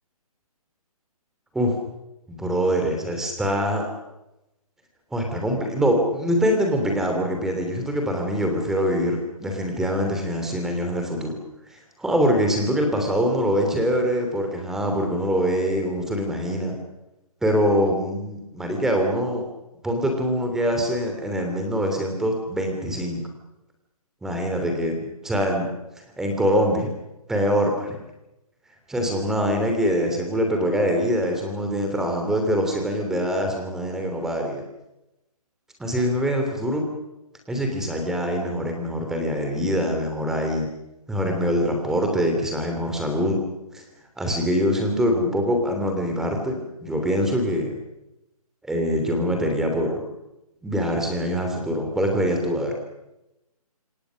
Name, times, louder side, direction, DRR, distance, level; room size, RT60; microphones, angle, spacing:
voice 1, 2.3-3.9 5.1-11.4 12.0-16.8 17.4-19.5 19.8-23.2 24.2-25.7 26.2-26.9 27.3-28.0 28.9-34.6 35.8-36.8 37.5-40.7 41.1-43.4 43.7-43.8 44.2-47.8 48.6-50.0 50.6-52.8, equal, ahead, 3 dB, 3.0 m, -24 dB
27.5 x 23.5 x 6.4 m, 0.93 s
hypercardioid pair, 165°, 19 cm